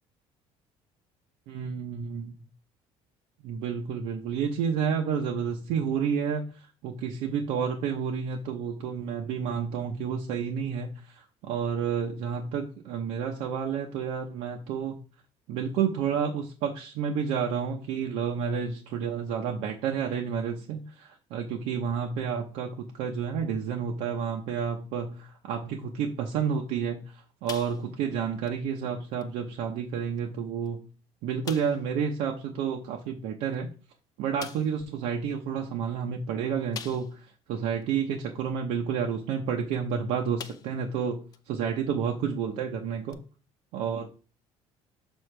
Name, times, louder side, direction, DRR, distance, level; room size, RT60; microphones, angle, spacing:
voice 1, 1.5-2.4 3.4-6.5 6.8-15.0 15.5-27.0 27.4-30.8 31.2-33.7 34.2-43.2 43.7-44.1, right 7 dB, 75° right, 1 dB, 0.8 m, -30 dB
sound 1, 27.5-28.1 28.5-28.6 29.2-29.3 30.2-30.3 30.6-30.7 31.4-31.9 33.5-33.6 34.4-34.8 36.7-37.3 37.8-37.9 39.7-39.9 40.4-40.9 41.3-41.4 43.1-43.2, left 9 dB, 30° left, 0.4 m, -42 dB
6.3 x 4.7 x 3.3 m, 0.37 s
cardioid pair, 170°, 12 cm